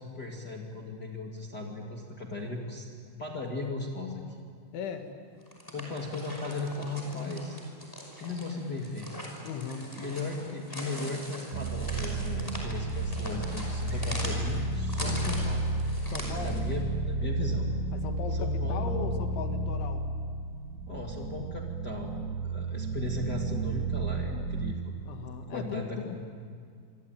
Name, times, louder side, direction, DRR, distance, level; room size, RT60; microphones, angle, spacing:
voice 1, 0.0-2.9 3.2-4.2 5.7-7.6 8.2-9.1 10.0-15.7 16.4-17.7 18.3-19.0 20.9-22.1 22.4-24.9 25.5-26.2, left 3 dB, 45° left, -1 dB, 1.2 m, -37 dB
voice 2, 4.7-5.2 9.4-10.0 16.1-16.7 17.9-20.1 25.1-26.2, left 6 dB, 70° left, 5 dB, 4.0 m, -38 dB
sound 1, 5.4-16.7, equal, 5° left, 4.7 m, -41 dB
sound 2, 11.5-24.7, right 2 dB, 85° right, 4.3 m, -32 dB
27.0 x 24.5 x 9.1 m, 2.1 s
omnidirectional pair, 5.9 m